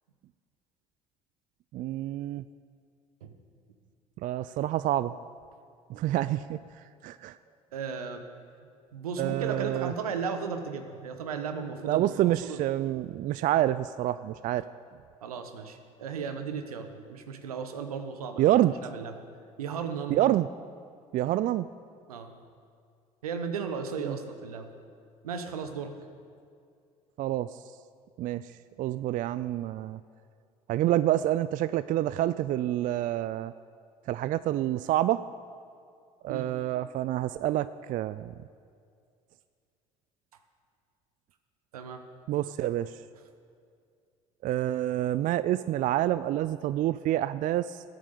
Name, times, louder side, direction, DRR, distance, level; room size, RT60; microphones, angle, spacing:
voice 1, 1.7-2.4 4.2-5.1 5.9-6.6 7.0-7.4 9.2-9.9 11.8-14.7 18.4-18.7 20.1-20.5 21.1-21.7 24.0-24.2 27.2-27.5 28.2-28.5 28.8-30.0 30.7-33.5 34.1-35.2 36.2-38.3 42.3-42.9 44.4-47.8, right 13 dB, 45° right, 15 dB, 0.4 m, -27 dB
voice 2, 7.7-8.2 8.9-12.7 15.2-19.1 19.6-20.2 22.1-22.3 23.2-24.7 25.2-25.9 36.3-36.5 41.7-42.0 42.6-42.7, right 6 dB, 85° right, 7 dB, 1.1 m, -35 dB
14.0 x 9.0 x 6.8 m, 2.3 s
hypercardioid pair, 60°, 18 cm